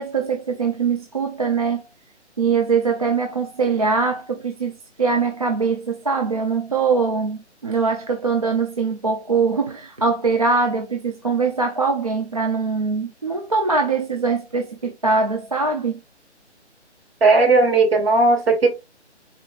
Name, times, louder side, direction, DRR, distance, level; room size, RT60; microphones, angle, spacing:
voice 1, 0.0-1.9 2.4-16.0, right 4 dB, 35° right, 0.4 m, -22 dB
voice 2, 17.2-18.8, right 3 dB, 55° right, 2.3 m, -16 dB
4.2 x 4.2 x 2.4 m
figure-of-eight pair, 150°, 35 cm